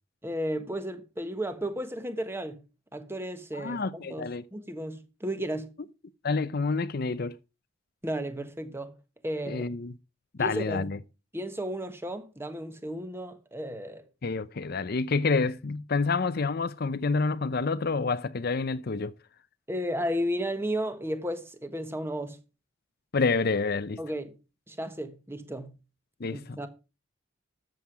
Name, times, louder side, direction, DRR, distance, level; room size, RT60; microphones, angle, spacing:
voice 1, 0.2-2.6 2.9-5.7 8.0-8.9 9.2-9.7 10.4-10.8 11.3-14.1 19.7-22.4 24.0-24.4 24.7-25.8 26.3-26.7, equal, 10° right, 1.3 m, -33 dB
voice 2, 3.5-4.4 6.2-7.3 9.5-9.9 10.4-11.0 14.2-19.1 23.1-24.0 26.2-26.7, left 4 dB, 45° left, 0.6 m, -28 dB
13.0 x 7.8 x 4.8 m
head